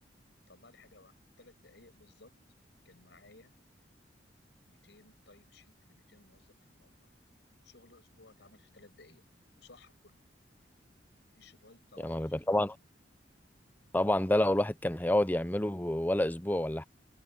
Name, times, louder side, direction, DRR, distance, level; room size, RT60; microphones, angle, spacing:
voice 1, 0.5-2.3 2.8-3.5 4.6-6.9 7.6-9.2 9.5-10.2 11.3-12.5, left 3 dB, 70° left, 6.3 m, -59 dB
voice 2, 12.0-12.7 13.9-16.8, left 1 dB, 10° left, 0.8 m, -28 dB
head